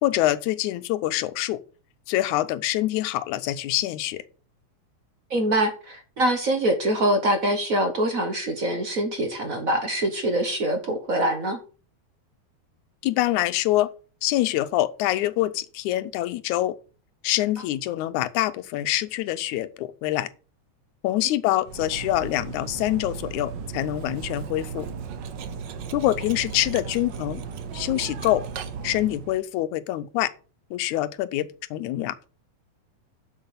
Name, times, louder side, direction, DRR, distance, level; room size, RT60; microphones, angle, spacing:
voice 1, 0.0-1.6 2.1-4.2 13.0-13.9 14.2-16.8 17.2-20.3 21.0-24.9 25.9-27.4 27.7-28.5 28.8-30.3 30.7-32.2, left 15 dB, 90° left, 2.1 m, -25 dB
voice 2, 5.3-11.6, right 1 dB, 50° right, 1.0 m, -24 dB
Cutlery silverware, 21.6-29.4, right 6 dB, 90° right, 0.9 m, -36 dB
7.6 x 6.5 x 6.9 m
omnidirectional pair, 3.3 m